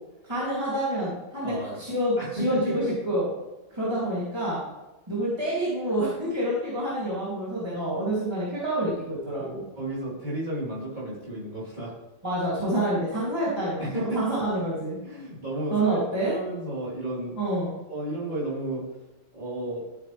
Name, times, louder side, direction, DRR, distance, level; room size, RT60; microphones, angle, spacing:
voice 1, 0.2-3.3 3.7-4.6 5.1-9.6 12.2-15.0 15.7-16.3 17.4-17.7, right 1 dB, 20° right, -9 dB, 3.0 m, -27 dB
voice 2, 1.4-1.8 2.2-2.9 9.8-11.9 13.8-14.4 15.0-16.0 16.3-17.4 17.9-18.8 19.3-19.9, right 1 dB, 40° right, -8 dB, 4.3 m, -32 dB
14.0 x 8.3 x 3.4 m, 1.0 s
omnidirectional pair, 1.2 m